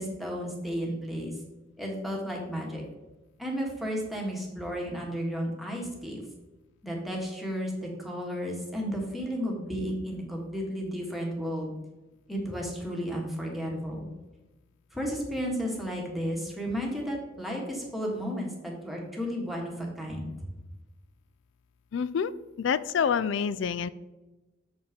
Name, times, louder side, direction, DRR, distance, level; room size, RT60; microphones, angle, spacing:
voice 1, 0.0-1.3 1.8-2.8 3.4-6.2 6.8-11.7 12.3-14.1 14.9-20.3, equal, ahead, -2 dB, 1.4 m, -33 dB
voice 2, 21.9-22.3 22.6-23.9, left 7 dB, 70° left, 16 dB, 0.3 m, -27 dB
7.0 x 4.2 x 5.1 m, 1.1 s
head